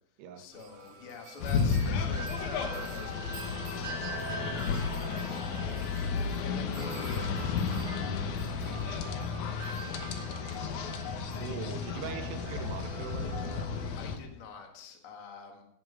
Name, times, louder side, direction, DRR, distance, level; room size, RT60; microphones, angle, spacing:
voice 1, 0.4-6.0 6.4-9.3 14.0-15.6, left 4 dB, 45° left, 2 dB, 1.9 m, -48 dB
Wind chime, 0.5-13.9, right 5 dB, 45° right, 2.8 m, -45 dB
sound 1, 1.4-14.2, left 5 dB, 70° left, 1.9 m, -33 dB
sound 2, 2.8-6.9, left 4 dB, 85° left, 4.5 m, -48 dB
voice 2, 11.4-13.7, right 8 dB, 80° right, 7 dB, 3.1 m, -41 dB
16.5 x 7.6 x 5.6 m, 0.77 s
omnidirectional pair, 4.9 m